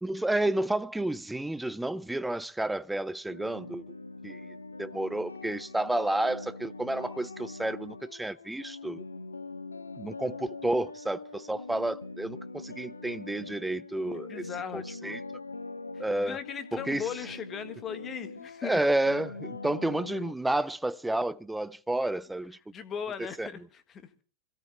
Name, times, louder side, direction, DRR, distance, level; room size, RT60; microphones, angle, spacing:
voice 1, 0.0-3.8 4.2-9.0 10.0-15.2 16.0-16.4 16.7-17.1 18.6-22.6 23.4-23.5, right 1 dB, 5° right, 0.6 m, -31 dB
sound 1, 3.3-20.3, left 3 dB, 80° left, 0.8 m, -43 dB
voice 2, 14.1-15.2 15.9-18.8 22.7-24.2, left 8 dB, 25° left, 1.6 m, -39 dB
26.0 x 17.0 x 2.2 m
figure-of-eight pair, 90°, 0 cm